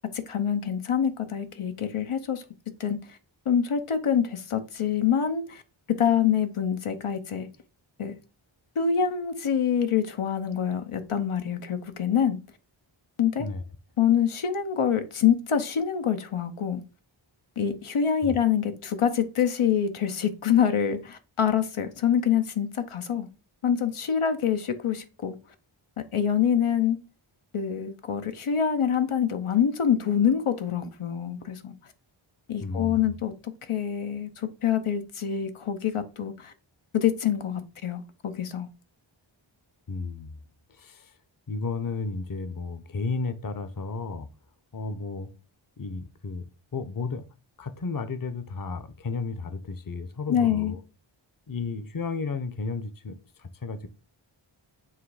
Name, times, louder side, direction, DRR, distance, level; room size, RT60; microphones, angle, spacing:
voice 1, 0.1-2.4 2.8-3.2 3.5-5.6 5.9-7.5 8.0-8.1 8.8-12.4 13.2-13.5 14.0-16.8 17.6-23.3 23.6-25.4 26.0-27.0 27.5-31.7 32.5-36.5 36.9-38.7 50.3-50.8, left 8 dB, 90° left, 0.9 m, -26 dB
voice 2, 32.6-33.0 39.9-40.4 40.7-41.1 41.5-44.3 44.7-45.3 45.8-46.5 46.7-47.2 47.6-50.8 51.5-53.9, left 4 dB, 45° left, 0.7 m, -33 dB
7.5 x 3.1 x 4.8 m
wide cardioid pair, 70°, 49 cm